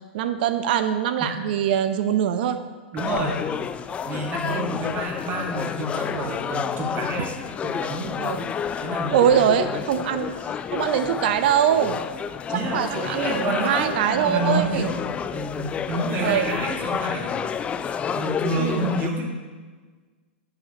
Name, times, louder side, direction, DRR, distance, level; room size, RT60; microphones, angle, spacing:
voice 1, 0.1-2.6 4.5-4.7 8.2-8.4 9.1-10.3 10.7-12.0 12.7-15.0 16.2-16.6 18.6-18.9, right 9 dB, 60° right, 10 dB, 0.7 m, -23 dB
voice 2, 2.9-3.4 4.0-7.3 7.6-8.2 8.8-9.5 12.5-15.0 15.3-17.4 18.1-19.3, right 1 dB, 35° right, 0 dB, 1.8 m, -29 dB
sound 1, 3.0-19.1, left 7 dB, 20° left, 0.3 m, -30 dB
11.0 x 7.0 x 3.0 m, 1.4 s
hypercardioid pair, 115°, 6 cm